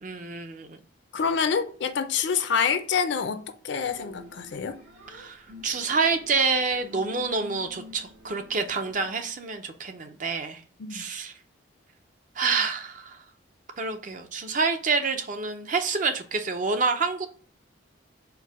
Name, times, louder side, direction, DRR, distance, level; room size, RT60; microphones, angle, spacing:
voice 1, 0.0-0.8 5.1-10.6 10.9-11.3 12.4-13.2 13.8-17.3, right 4 dB, 40° right, 0.5 m, -27 dB
voice 2, 1.1-4.8 10.8-11.0, left 6 dB, 65° left, 0.4 m, -27 dB
sound 1, 3.8-9.1, left 1 dB, 80° right, 1.5 m, -48 dB
4.5 x 2.1 x 4.6 m
head